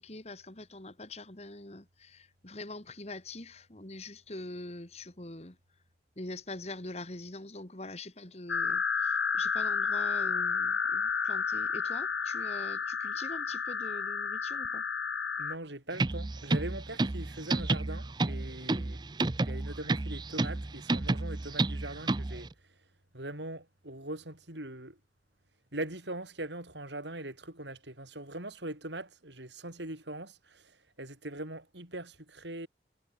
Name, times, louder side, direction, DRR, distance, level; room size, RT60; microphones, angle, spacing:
voice 1, 0.0-5.6 6.2-14.8, left 2 dB, 35° left, 1.9 m, -44 dB
sound 1, 8.5-15.6, left 5 dB, 75° left, 2.6 m, -31 dB
voice 2, 15.4-19.0 19.4-22.5 23.1-25.0 25.7-32.7, right 1 dB, 75° right, 7.0 m, -41 dB
sound 2, 15.9-22.5, right 2 dB, 25° right, 0.5 m, -31 dB
head